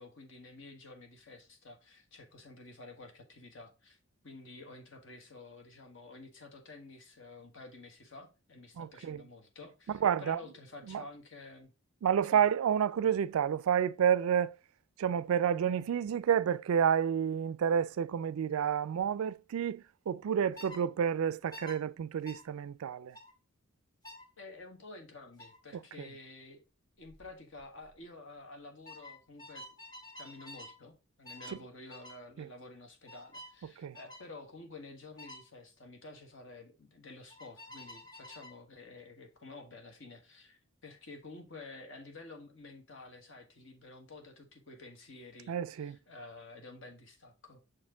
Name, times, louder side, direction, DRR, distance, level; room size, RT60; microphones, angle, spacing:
voice 1, 0.0-4.0 4.2-11.7 12.3-12.4 24.4-26.6 27.0-29.6 30.2-47.6, left 2 dB, 60° left, 1.5 m, -51 dB
voice 2, 8.8-9.2 9.9-10.4 10.9-11.0 12.0-14.5 15.0-23.2 26.0-26.1 32.4-32.5 33.8-34.0 45.5-46.0, right 8 dB, 75° right, 0.3 m, -30 dB
sound 1, 20.6-20.8 21.5-21.8 22.3-22.4 23.1-23.3 24.0-24.3 25.4-25.6 27.1-27.3 27.6-27.9 28.9-30.8 31.3-31.6 31.9-32.2 33.1-33.5 33.9-34.3 35.2-35.4 37.3-38.6, left 1 dB, 20° left, 2.0 m, -49 dB
6.4 x 4.3 x 3.7 m
head